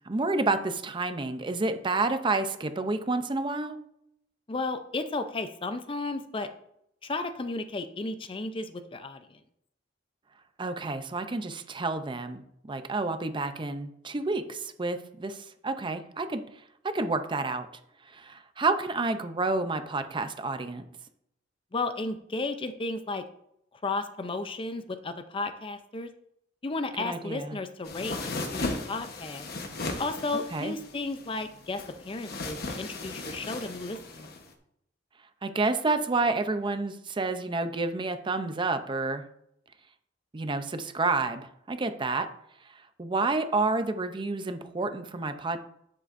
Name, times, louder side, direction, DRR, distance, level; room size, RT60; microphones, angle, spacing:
voice 1, 0.1-3.8 10.6-16.4 16.8-17.7 18.1-20.9 27.0-27.6 30.5-30.7 35.4-39.2 40.3-42.3 42.7-45.6, right 3 dB, 25° right, 9 dB, 0.5 m, -29 dB
voice 2, 4.5-6.5 7.0-9.4 21.7-23.2 23.8-26.1 26.6-29.5 30.0-34.3, left 3 dB, 30° left, 9 dB, 0.5 m, -34 dB
sound 1, 27.8-34.5, left 2 dB, 55° left, 1.1 m, -37 dB
9.8 x 7.6 x 2.6 m, 0.76 s
head